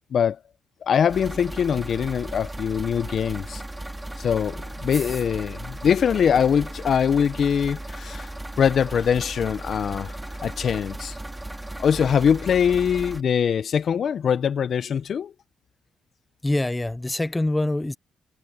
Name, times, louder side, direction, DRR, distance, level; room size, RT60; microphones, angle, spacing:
voice 1, 0.8-3.6 4.2-8.3 8.6-11.1 11.8-15.3, left 7 dB, 55° left, 0.7 m, -23 dB
sound 1, 1.1-13.2, right 1 dB, 10° right, 2.1 m, -36 dB
voice 2, 16.4-18.0, left 2 dB, 15° left, 0.7 m, -25 dB
cardioid pair, 90°, 0 cm